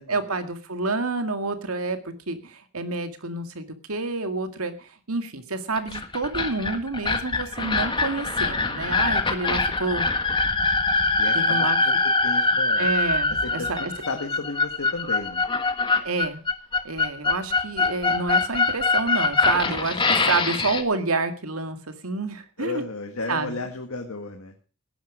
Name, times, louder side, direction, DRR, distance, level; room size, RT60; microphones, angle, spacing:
voice 1, 0.1-10.1 11.3-11.8 12.8-13.9 16.0-16.4 16.8-20.0 20.2-22.8 23.3-23.6, right 3 dB, 85° right, 8 dB, 2.0 m, -28 dB
sound 1, 5.8-20.8, left 3 dB, 25° left, 1.5 m, -23 dB
voice 2, 11.2-11.9 12.2-12.9 13.4-15.4 22.6-24.5, left 3 dB, 75° left, 4 dB, 1.7 m, -34 dB
17.5 x 10.5 x 4.9 m, 0.37 s
head